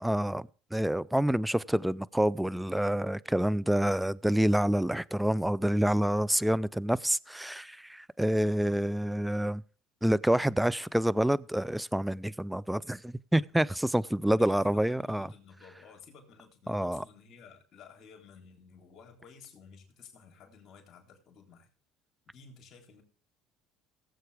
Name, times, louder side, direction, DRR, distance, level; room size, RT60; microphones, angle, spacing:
voice 1, 0.0-9.6 10.0-15.3 16.7-17.0, right 1 dB, 5° right, 0.4 m, -28 dB
voice 2, 14.3-21.7 22.3-23.0, left 5 dB, 50° left, 3.7 m, -54 dB
18.0 x 7.8 x 3.4 m
supercardioid pair, 90°, 0 cm